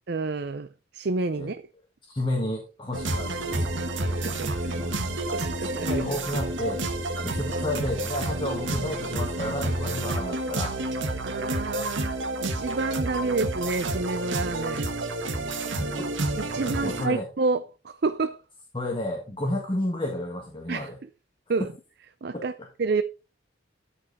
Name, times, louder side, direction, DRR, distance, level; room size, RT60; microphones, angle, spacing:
voice 1, 0.1-1.6 3.9-4.5 5.3-6.0 11.0-14.9 16.4-18.4 20.7-20.9 21.5-21.7 22.2-22.5 22.8-23.0, right 3 dB, 55° right, 0.5 m, -29 dB
voice 2, 2.0-5.2 5.8-6.8 7.2-10.8 16.0-16.1 16.8-17.3 18.7-21.0 22.3-22.4, left 1 dB, 25° left, 1.5 m, -32 dB
sound 1, 2.9-17.1, right 2 dB, 75° right, 1.3 m, -29 dB
13.0 x 5.4 x 4.2 m
head